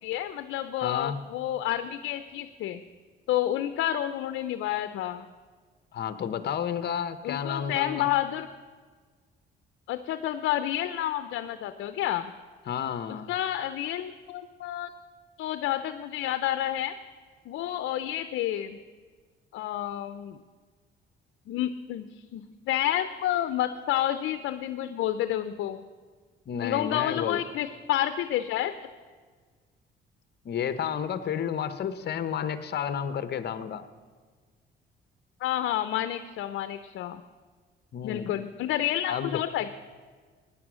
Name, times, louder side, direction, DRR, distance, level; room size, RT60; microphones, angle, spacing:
voice 1, 0.0-2.8 3.3-5.3 7.2-8.5 9.9-12.3 13.3-14.9 15.4-16.9 17.5-18.8 19.5-20.4 21.5-25.8 26.6-28.7 35.4-37.2 38.0-39.7, left 12 dB, 85° left, 10 dB, 0.6 m, -29 dB
voice 2, 0.8-1.2 5.9-8.1 12.7-13.3 26.5-27.4 30.4-33.8 37.9-38.4 39.1-39.3, left 8 dB, 55° left, 11 dB, 0.9 m, -31 dB
15.5 x 10.0 x 6.2 m, 1.5 s
cardioid pair, 90°, 20 cm